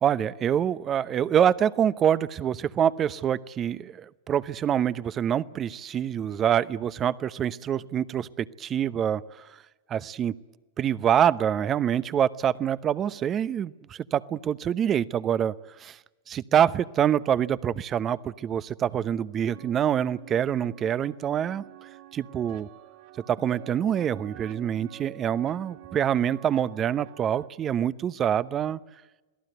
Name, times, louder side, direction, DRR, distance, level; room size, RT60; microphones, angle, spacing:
voice 1, 0.0-9.2 9.9-10.4 10.8-16.0 16.3-22.7 23.3-28.8, right 9 dB, 30° right, 17 dB, 0.9 m, -26 dB
sound 1, 19.5-27.5, right 15 dB, 50° right, 1.2 m, -48 dB
27.0 x 17.5 x 9.3 m, 1.2 s
hypercardioid pair, 100°, 0 cm